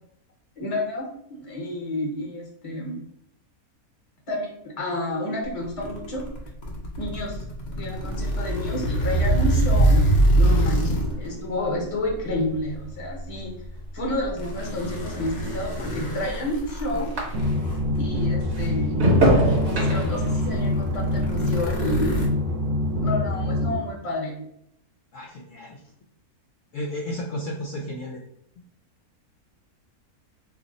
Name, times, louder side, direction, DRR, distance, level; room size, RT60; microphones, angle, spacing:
voice 1, 0.6-3.0 4.3-6.2 7.0-7.4 7.8-10.0 10.3-13.5 13.9-17.1 18.0-19.0 19.2-22.0 23.0-24.4, left 1 dB, 30° left, -1 dB, 0.8 m, -30 dB
sound 1, 5.6-11.3 12.1-12.3 14.2-18.0 18.6-18.7 19.0-22.3, right 1 dB, 85° left, 0.4 m, -24 dB
voice 2, 10.6-11.5 25.1-25.8 26.7-28.2, equal, 65° left, -3 dB, 0.8 m, -34 dB
sound 2, 11.1-17.8 18.2-22.7 23.0-23.5, right 1 dB, 50° right, 1.0 m, -28 dB
sound 3, 17.3-23.8, left 1 dB, 80° right, 1.1 m, -25 dB
2.7 x 2.0 x 3.8 m, 0.74 s
omnidirectional pair, 1.6 m